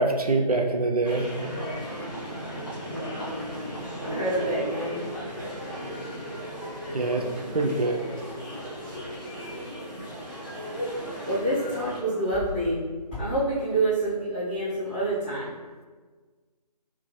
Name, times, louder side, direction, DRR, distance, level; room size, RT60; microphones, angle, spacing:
voice 1, 0.0-1.3 6.9-7.2 7.5-8.0, right 2 dB, 60° right, 3 dB, 0.5 m, -24 dB
sound 1, 1.0-12.0, equal, 30° left, 1.2 m, -36 dB
voice 2, 2.8-3.4 4.0-5.0 11.2-12.8 13.1-15.5, right 1 dB, 15° left, -15 dB, 1.5 m, -27 dB
3.5 x 3.3 x 3.3 m, 1.4 s
figure-of-eight pair, 155°, 21 cm